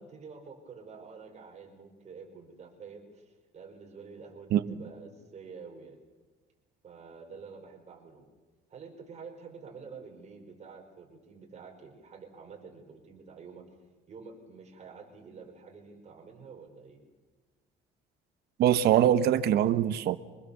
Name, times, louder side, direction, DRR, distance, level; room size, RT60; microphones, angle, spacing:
voice 1, 0.0-6.0 6.8-8.3 8.7-13.7 14.1-17.0, right 5 dB, 40° right, 3 dB, 5.1 m, -48 dB
voice 2, 18.6-20.2, right 10 dB, 70° right, 14 dB, 1.1 m, -23 dB
25.0 x 20.5 x 7.1 m, 1.3 s
cardioid pair, 110°, 17 cm